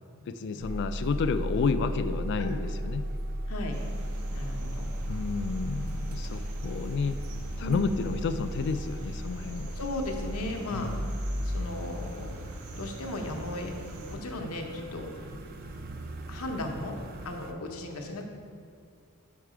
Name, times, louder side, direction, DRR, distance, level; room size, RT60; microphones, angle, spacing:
voice 1, 0.3-3.1 5.1-7.2 7.6-9.7 10.7-11.0, left 5 dB, 55° left, 11 dB, 0.3 m, -31 dB
sound 1, 0.6-17.5, equal, 45° right, 0.4 m, -36 dB
voice 2, 3.5-3.8 4.3-4.9 6.3-6.5 7.6-8.1 9.7-10.9 11.4-12.4 12.8-13.7 14.1-15.2 16.3-17.0 17.2-18.2, left 1 dB, 80° left, 3 dB, 0.8 m, -36 dB
sound 2, 3.7-14.2, right 1 dB, 80° right, 0.8 m, -45 dB
5.5 x 4.6 x 4.9 m, 2.3 s
head